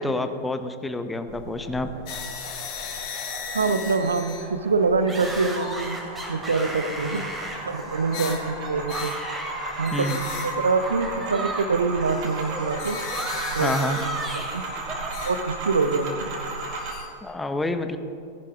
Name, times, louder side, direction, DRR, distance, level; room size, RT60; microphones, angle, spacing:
voice 1, 0.0-1.9 9.9-10.2 13.6-14.0 17.2-18.0, left 1 dB, 10° left, 9 dB, 0.9 m, -28 dB
sound 1, 1.3-17.0, right 3 dB, 40° right, 2.9 m, -36 dB
sound 2, 2.1-9.4 9.8-10.6 12.0-14.6 15.0-17.3, left 6 dB, 45° left, 1.6 m, -39 dB
voice 2, 3.5-6.0 6.3-7.2 7.7-9.1 9.8-10.1 10.4-13.0 13.5-14.1 14.5-14.6 15.2-16.4, right 4 dB, 75° right, 11 dB, 0.7 m, -25 dB
sound 3, 5.1-11.7 11.9-15.1, right 1 dB, 10° right, 3.2 m, -35 dB
18.5 x 11.0 x 3.4 m, 2.6 s
figure-of-eight pair, 90°, 0 cm